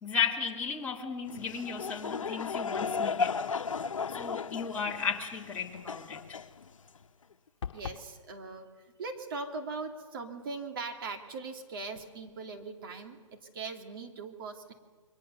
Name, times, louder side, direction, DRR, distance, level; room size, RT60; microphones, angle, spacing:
voice 1, 0.0-3.3 4.1-6.2, left 6 dB, 10° left, -3 dB, 2.4 m, -34 dB
Laughter / Crowd, 1.3-7.0, left 5 dB, 80° left, 1.1 m, -35 dB
sound 1, 7.6-8.1, left 7 dB, 60° left, 1.5 m, -38 dB
voice 2, 7.7-8.7 9.0-14.7, right 4 dB, 45° right, 4 dB, 2.5 m, -40 dB
29.0 x 23.0 x 6.8 m, 1.5 s
hypercardioid pair, 160°, 17 cm